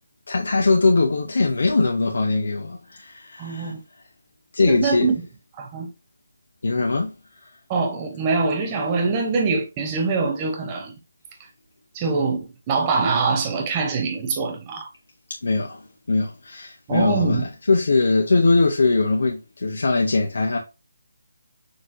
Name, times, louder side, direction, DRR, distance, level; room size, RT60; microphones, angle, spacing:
voice 1, 0.3-3.7 4.5-5.1 6.6-7.1 7.4-7.5 15.3-20.6, left 3 dB, 60° left, 0.7 m, -21 dB
voice 2, 3.4-3.8 4.7-5.1 5.6-5.9 7.7-10.9 11.9-12.4 12.7-14.9 16.9-17.4, right 4 dB, 15° right, 0.5 m, -23 dB
6.2 x 2.8 x 2.5 m
hypercardioid pair, 180°, 0 cm